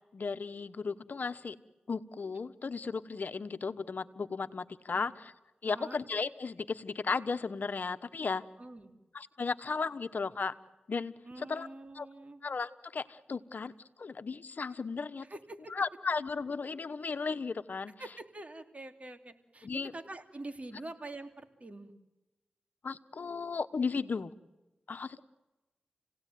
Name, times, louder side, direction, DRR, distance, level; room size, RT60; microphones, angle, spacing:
voice 1, 0.1-1.6 1.9-5.3 5.6-8.4 9.1-10.5 10.9-11.7 11.9-12.1 12.4-13.7 14.0-15.2 15.7-17.9 19.6-19.9 22.8-24.3 24.9-25.2, left 4 dB, 70° left, 12 dB, 1.1 m, -35 dB
voice 2, 5.6-6.0 8.6-8.9 11.2-12.4 15.3-15.7 18.0-21.9, right 2 dB, 45° right, 7 dB, 3.1 m, -45 dB
29.0 x 17.5 x 9.3 m, 1.1 s
cardioid pair, 40°, 3 cm